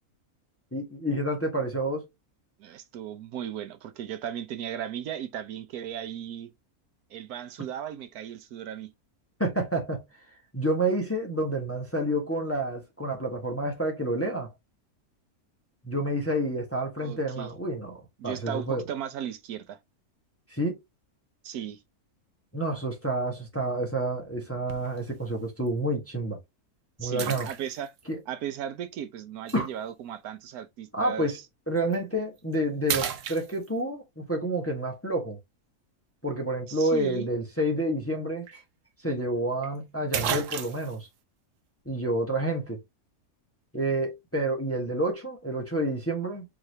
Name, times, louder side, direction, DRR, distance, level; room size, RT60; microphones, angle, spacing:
voice 1, 0.7-2.1 9.4-10.0 10.5-14.5 15.8-18.8 20.5-20.8 22.5-26.4 27.0-27.5 28.1-28.2 29.5-29.7 30.9-31.4 31.7-35.4 36.2-38.6 39.0-41.1 41.8-42.8 43.7-46.5, right 1 dB, 10° left, 0.9 m, -29 dB
voice 2, 2.6-6.5 7.1-8.9 17.0-17.5 18.2-19.8 21.4-21.8 27.0-27.9 28.3-31.4 36.7-37.3, right 9 dB, 85° right, 1.2 m, -36 dB
sound 1, 24.7-25.0 25.7-25.8 27.2-28.0 29.5-29.6 31.8-32.0 32.4-32.6 32.9-34.0 38.1-38.2 38.5-38.6 39.6-39.7 40.1-41.0, right 9 dB, 65° right, 0.9 m, -32 dB
4.8 x 3.3 x 2.7 m
omnidirectional pair, 1.5 m